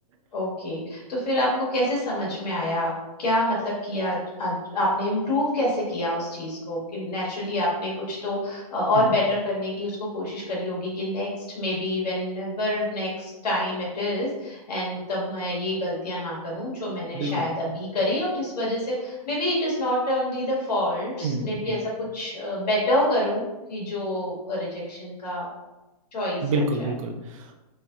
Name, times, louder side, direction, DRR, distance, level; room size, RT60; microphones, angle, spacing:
voice 1, 0.3-2.9 3.2-25.5 26.1-26.4 26.8-26.9, left 1 dB, 90° left, -5 dB, 1.3 m, -27 dB
voice 2, 21.2-21.8 26.4-27.5, right 2 dB, 55° right, 4 dB, 0.5 m, -28 dB
3.0 x 2.6 x 2.3 m, 1.0 s
hypercardioid pair, 140°, 20 cm